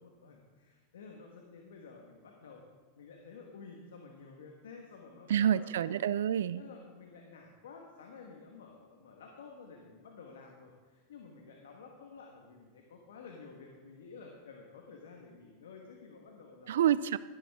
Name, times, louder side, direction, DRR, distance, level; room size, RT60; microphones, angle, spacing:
voice 1, 0.0-2.6 3.0-6.0 6.6-16.9, left 4 dB, 85° left, 1 dB, 1.4 m, -52 dB
voice 2, 5.3-6.6 16.7-17.2, right 10 dB, 80° right, 17 dB, 0.3 m, -28 dB
12.5 x 10.5 x 3.6 m, 1.4 s
hypercardioid pair, 110°, 0 cm